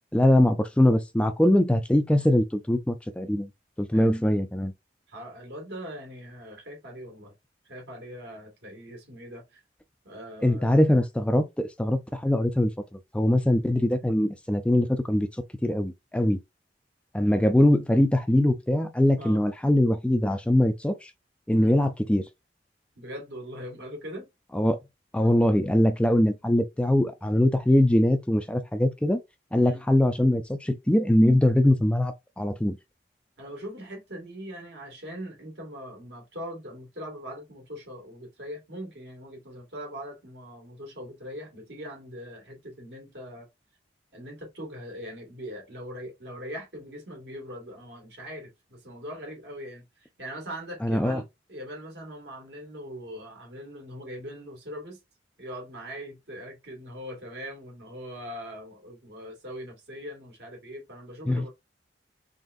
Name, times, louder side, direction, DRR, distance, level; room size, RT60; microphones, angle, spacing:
voice 1, 0.1-3.5 3.8-4.7 10.4-12.7 13.1-15.3 15.6-16.4 17.1-21.1 21.5-22.2 24.5-24.8 25.1-29.2 29.5-32.8 50.8-51.2 61.3-61.5, left 1 dB, 5° left, 0.4 m, -22 dB
voice 2, 5.1-7.3 7.7-9.6 10.0-10.8 19.2-19.4 21.5-21.8 23.0-24.3 29.6-29.8 33.4-43.5 44.1-55.0 55.4-61.5, equal, 70° right, 2.0 m, -41 dB
3.9 x 3.4 x 2.6 m
head